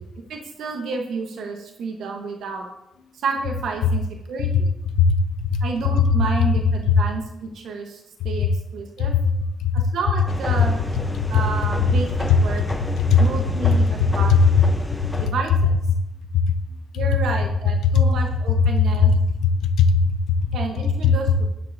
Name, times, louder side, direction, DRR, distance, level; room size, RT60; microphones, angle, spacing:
voice 1, 0.0-2.7 3.1-4.0 4.3-4.7 5.6-9.1 9.7-10.8 11.3-12.6 13.2-14.3 15.2-15.8 16.9-19.1 20.5-21.4, right 4 dB, 70° right, 2 dB, 1.2 m, -30 dB
voice 2, 5.0-5.5 6.9-7.0 9.0-9.2 9.6-9.9 13.0-13.2 13.7-13.8 16.3-16.4 17.9-18.0 19.0-20.5 21.0-21.1, left 6 dB, 85° left, 9 dB, 0.7 m, -18 dB
sound 1, 10.3-15.3, left 1 dB, 5° left, 0.9 m, -31 dB
12.0 x 10.5 x 2.7 m, 0.86 s
cardioid pair, 155°, 0 cm